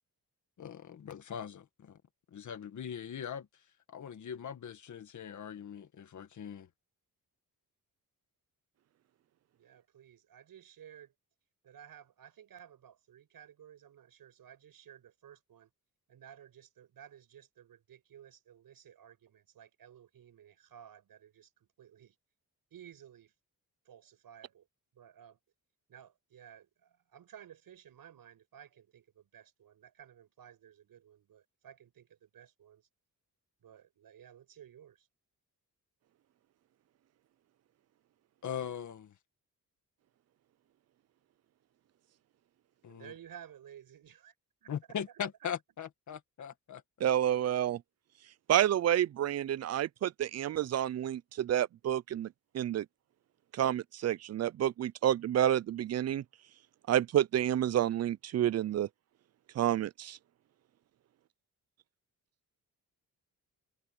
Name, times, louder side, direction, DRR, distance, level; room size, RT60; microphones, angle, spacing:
voice 1, 0.6-2.0 2.3-3.5 3.9-6.7 38.4-39.1 42.8-43.1 44.7-47.1, left 8 dB, 55° left, 1.8 m, -41 dB
voice 2, 9.6-11.1 11.6-15.7 16.1-22.2 22.7-23.3 23.9-24.7 24.9-25.4 25.9-32.9 33.6-35.1 42.9-44.4 44.6-44.7, right 9 dB, 75° right, 7.2 m, -55 dB
voice 3, 47.0-47.8 48.5-52.3 52.5-52.9 53.5-56.2 56.9-58.9 59.6-60.2, right 11 dB, 45° right, 0.4 m, -29 dB
wide cardioid pair, 175°, 35 cm